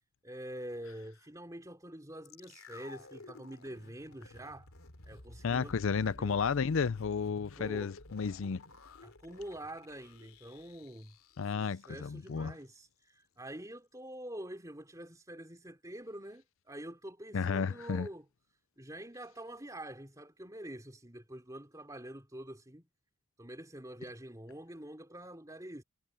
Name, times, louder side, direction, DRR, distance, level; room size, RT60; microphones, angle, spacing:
voice 1, 0.2-4.7 5.1-6.4 7.6-7.9 9.0-11.1 11.4-18.2 18.8-22.9 23.4-25.8, right 1 dB, 15° right, 3.3 m, -46 dB
sound 1, 2.2-12.4 12.6-12.7, left 2 dB, 85° left, 3.0 m, -54 dB
voice 2, 5.4-8.6 11.4-12.5 17.3-18.1, left 5 dB, 70° left, 0.5 m, -32 dB
head